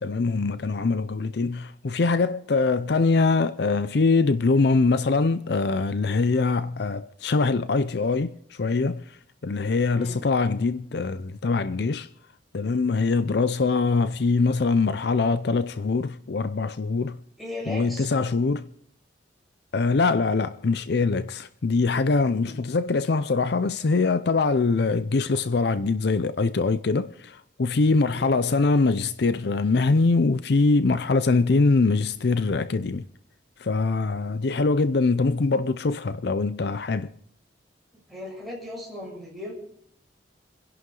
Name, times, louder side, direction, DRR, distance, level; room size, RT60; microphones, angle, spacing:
voice 1, 0.0-12.1 12.5-17.2 17.7-18.7 19.7-33.1 33.6-37.1, left 3 dB, 60° left, 0.5 m, -23 dB
voice 2, 9.9-10.2 17.4-18.1 22.3-22.6 28.0-28.4 37.9-39.5, left 1 dB, ahead, 5.9 m, -37 dB
28.5 x 11.0 x 3.9 m
head